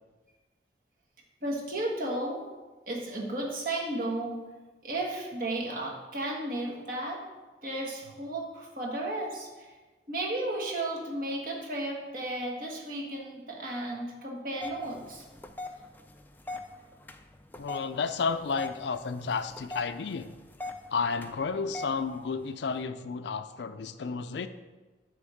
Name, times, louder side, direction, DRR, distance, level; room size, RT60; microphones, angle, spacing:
voice 1, 1.4-2.4 2.9-4.4 4.8-7.2 7.6-9.7 10.1-15.2 15.6-15.8 22.1-22.3, right 1 dB, 50° right, -2 dB, 1.6 m, -34 dB
sound 1, 14.6-22.8, left 2 dB, 10° left, 0.3 m, -43 dB
voice 2, 17.6-20.3 20.9-24.5, left 5 dB, 75° left, 10 dB, 0.4 m, -32 dB
9.1 x 3.5 x 6.4 m, 1.2 s
head